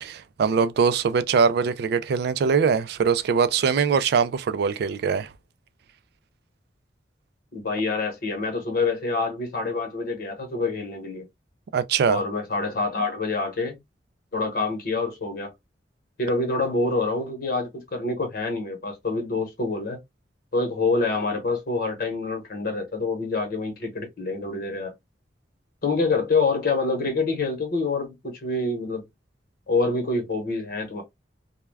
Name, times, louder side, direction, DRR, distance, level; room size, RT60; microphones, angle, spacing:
voice 1, 0.0-5.3 11.7-12.2, right 6 dB, 65° right, 0.3 m, -22 dB
voice 2, 7.5-11.3 12.1-13.8 14.3-15.5 16.2-20.0 20.5-24.9 25.8-29.0 29.7-31.0, left 3 dB, 55° left, 0.9 m, -26 dB
2.2 x 2.1 x 3.3 m
head